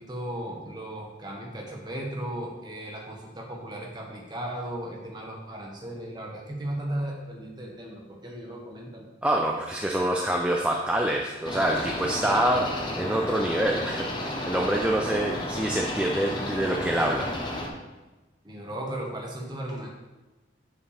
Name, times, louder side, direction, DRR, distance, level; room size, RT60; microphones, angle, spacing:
voice 1, 0.0-9.1 18.4-19.9, right 1 dB, 20° right, -1 dB, 1.3 m, -36 dB
voice 2, 9.2-17.3, right 1 dB, 5° right, 0 dB, 0.4 m, -26 dB
sound 1, 11.4-17.7, left 1 dB, 25° left, 0.9 m, -32 dB
7.8 x 7.3 x 3.4 m, 1.1 s
head